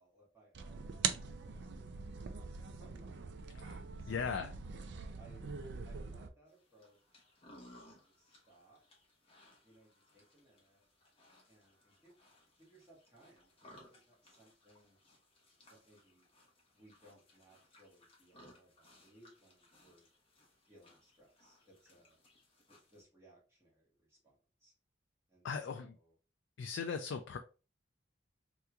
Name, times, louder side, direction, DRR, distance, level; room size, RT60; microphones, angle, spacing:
voice 1, 0.0-3.5 4.0-4.7 5.2-5.5 5.8-7.2 7.5-8.8 9.6-10.8 11.5-12.2 12.6-15.0 15.7-16.3 16.7-20.1 20.6-22.2 22.7-24.7 25.3-26.1, right 1 dB, 15° right, -6 dB, 1.7 m, -65 dB
sound 1, 0.5-6.3, right 6 dB, 65° right, 0.4 m, -42 dB
voice 2, 4.1-4.5 25.4-25.9 26.6-27.4, left 6 dB, 85° left, 6 dB, 0.4 m, -38 dB
sound 2, 6.5-23.0, left 1 dB, 30° left, 1.0 m, -63 dB
3.4 x 2.9 x 2.3 m, 0.34 s
head